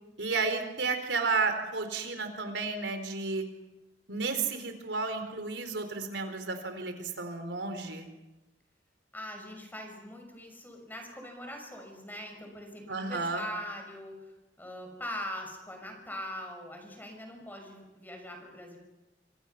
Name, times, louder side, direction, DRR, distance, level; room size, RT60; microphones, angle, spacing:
voice 1, 0.2-3.5 4.1-8.1 12.9-13.4, right 4 dB, 85° right, 7 dB, 4.2 m, -32 dB
voice 2, 9.1-18.8, left 1 dB, 10° left, 3 dB, 6.2 m, -42 dB
27.5 x 25.5 x 5.8 m, 1.0 s
head